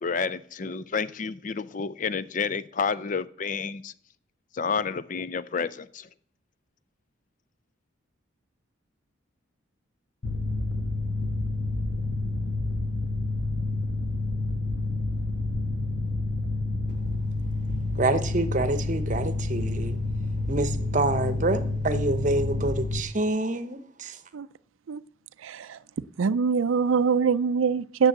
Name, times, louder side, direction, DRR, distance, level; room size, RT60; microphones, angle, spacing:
voice 1, 0.0-3.9 4.5-6.1, left 5 dB, 40° left, 0.4 m, -30 dB
Mechanical fan, 10.2-23.0, left 2 dB, 60° left, 1.3 m, -29 dB
voice 2, 18.0-20.0 20.5-24.1, right 2 dB, 40° right, 0.8 m, -27 dB
voice 3, 25.4-25.8 26.2-28.1, right 6 dB, 85° right, 0.4 m, -24 dB
9.9 x 6.9 x 7.8 m
head